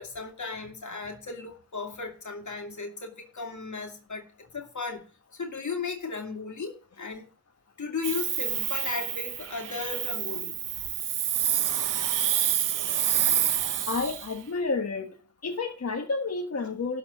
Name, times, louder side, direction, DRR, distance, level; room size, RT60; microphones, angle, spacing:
voice 1, 0.0-5.0 5.3-7.3 7.8-10.6, left 4 dB, 65° left, 2.4 m, -36 dB
Hiss, 8.0-14.3, right 10 dB, 80° right, 0.6 m, -28 dB
voice 2, 13.9-15.2 15.4-17.0, left 4 dB, 50° left, 1.3 m, -30 dB
12.5 x 4.3 x 8.1 m
cardioid pair, 45°, 31 cm